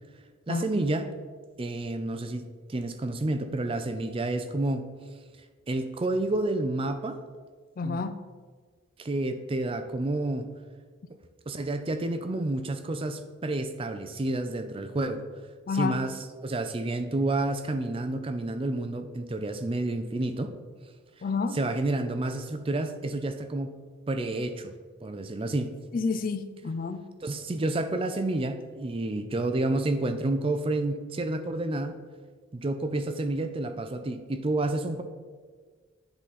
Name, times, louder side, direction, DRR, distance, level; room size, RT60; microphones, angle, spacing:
voice 1, 0.5-1.1 1.6-4.9 5.7-7.2 7.8-8.0 9.0-10.5 11.5-15.2 15.7-16.1 16.4-20.6 21.5-23.8 24.1-24.7 25.0-25.8 27.2-32.0 32.5-35.0, right 2 dB, 25° right, 9 dB, 0.4 m, -29 dB
voice 2, 7.8-8.2 15.7-16.0 21.2-21.6 25.9-27.0, left 4 dB, 45° left, 10 dB, 0.4 m, -29 dB
9.9 x 3.9 x 4.1 m, 1.5 s
head